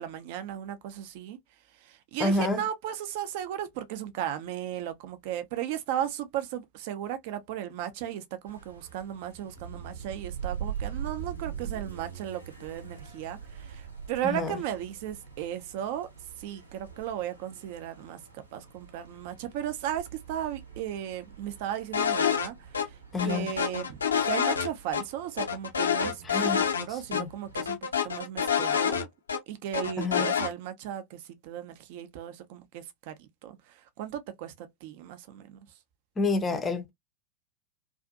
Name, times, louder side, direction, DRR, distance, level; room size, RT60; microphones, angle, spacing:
voice 1, 0.0-1.4 1.8-16.1 16.4-23.0 23.2-24.0 24.2-29.1 29.5-35.6, right 11 dB, 50° right, 0.5 m, -36 dB
voice 2, 2.2-2.6 14.2-14.6 23.1-23.5 26.2-27.3 30.0-30.3 36.2-36.9, left 3 dB, 20° left, 0.5 m, -29 dB
sound 1, 8.5-27.7, right 8 dB, 80° right, 0.8 m, -43 dB
sound 2, 21.9-22.5 22.7-22.8 23.2-25.0 25.4-26.8 27.1-27.2 27.5-29.4 29.7-30.5, left 7 dB, 75° left, 0.5 m, -27 dB
2.5 x 2.5 x 2.4 m
figure-of-eight pair, 90°, 0 cm